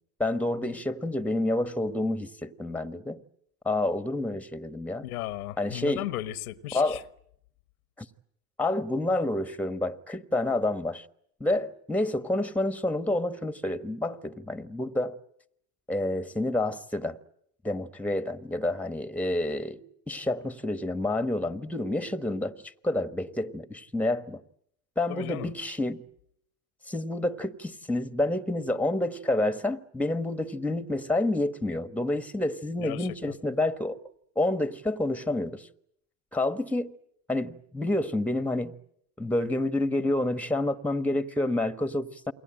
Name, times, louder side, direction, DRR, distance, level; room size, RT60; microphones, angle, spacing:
voice 1, 0.2-3.2 3.6-5.1 5.6-6.1 6.7-7.0 8.0-8.1 8.6-11.0 11.4-15.2 15.9-17.2 17.6-24.4 25.0-26.0 26.9-34.0 34.3-35.7 36.3-36.9 37.3-38.7 39.2-42.3, left 1 dB, 5° left, 1.4 m, -29 dB
voice 2, 5.0-7.0 25.1-25.5 32.8-33.2, left 15 dB, 80° left, 1.3 m, -35 dB
28.5 x 22.5 x 8.9 m
hypercardioid pair, 80°, 43 cm